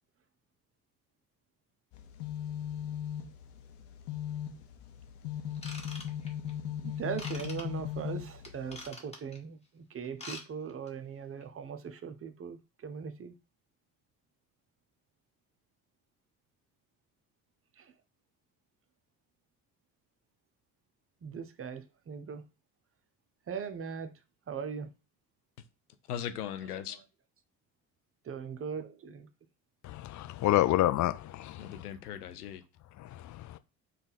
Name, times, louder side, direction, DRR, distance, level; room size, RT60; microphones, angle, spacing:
sound 1, 1.9-8.8, left 10 dB, 65° left, 0.8 m, -38 dB
Ratchet pawl / Tools, 5.6-6.5 7.2-7.6 8.4-9.4 10.0-10.4 10.7-10.9 11.4-11.5, left 2 dB, 15° left, 1.5 m, -44 dB
voice 1, 6.8-13.4 17.8-17.9 21.2-22.4 23.5-24.1 24.5-24.9 26.9-27.0 28.2-29.3, right 6 dB, 30° right, 0.6 m, -40 dB
voice 2, 26.1-27.0 30.6-30.7 31.6-32.6, left 10 dB, 90° left, 0.5 m, -39 dB
voice 3, 29.8-31.8 33.0-33.6, left 14 dB, 40° left, 0.5 m, -29 dB
3.8 x 2.3 x 4.0 m
hypercardioid pair, 55°, 44 cm